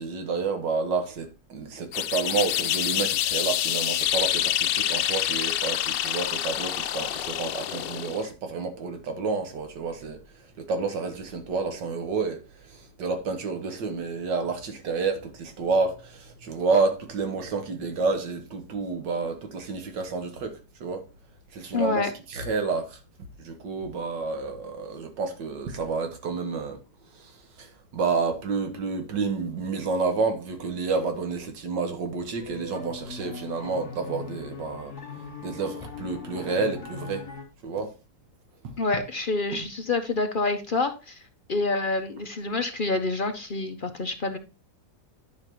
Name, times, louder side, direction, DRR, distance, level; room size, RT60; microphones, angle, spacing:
voice 1, 0.0-21.1 21.5-23.0 23.4-26.8 27.1-35.0 35.4-37.3 37.6-37.9 38.6-38.7, right 4 dB, 85° right, 1.9 m, -30 dB
sound 1, 1.9-8.3, left 12 dB, 90° left, 1.3 m, -27 dB
voice 2, 21.7-22.1 38.8-41.2 41.5-44.4, left 3 dB, 55° left, 0.5 m, -27 dB
sound 2, 32.4-37.4, left 4 dB, 10° left, 2.6 m, -40 dB
10.5 x 5.8 x 2.9 m
omnidirectional pair, 1.9 m